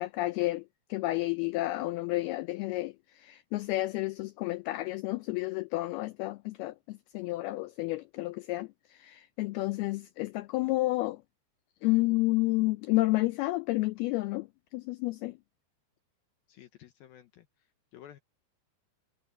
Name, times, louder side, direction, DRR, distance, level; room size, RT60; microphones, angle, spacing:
voice 1, 0.0-11.2 11.8-15.4, left 20 dB, 90° left, 2.2 m, -31 dB
voice 2, 16.5-18.2, left 11 dB, 70° left, 2.5 m, -53 dB
omnidirectional pair, 5.1 m